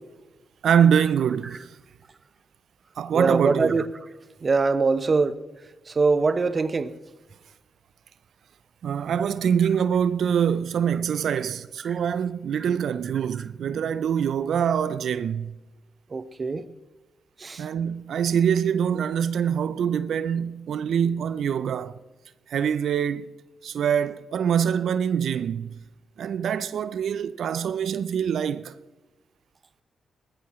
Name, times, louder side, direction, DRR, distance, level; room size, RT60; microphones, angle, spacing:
voice 1, 0.6-1.7 3.0-3.8 8.8-15.5 17.6-22.0 22.5-23.3 23.6-25.7 26.2-28.7, right 8 dB, 70° right, 0.4 m, -24 dB
voice 2, 3.1-3.8 4.4-5.4 6.0-6.9 11.8-11.9 16.1-16.6 17.4-17.6, right 4 dB, 45° right, 0.9 m, -22 dB
19.0 x 13.5 x 3.1 m
hypercardioid pair, 45°, 0 cm